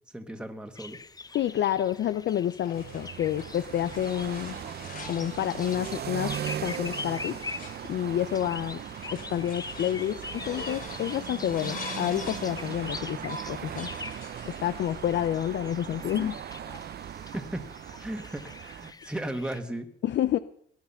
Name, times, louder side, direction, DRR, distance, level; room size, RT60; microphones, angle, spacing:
voice 1, 0.1-1.0 17.3-17.6 18.0-19.9, right 1 dB, 5° right, 5 dB, 1.7 m, -36 dB
sound 1, 0.8-19.6, left 3 dB, 20° left, 0.7 m, -44 dB
voice 2, 1.3-4.6 5.1-7.4 7.9-8.8 9.1-13.9 14.5-16.4 20.0-20.4, left 11 dB, 65° left, 13 dB, 0.7 m, -29 dB
sound 2, 2.4-15.3, left 3 dB, 45° left, 3.0 m, -45 dB
sound 3, 2.7-18.9, right 9 dB, 55° right, 0.7 m, -39 dB
19.0 x 11.0 x 5.6 m, 0.65 s
cardioid pair, 90°, 20 cm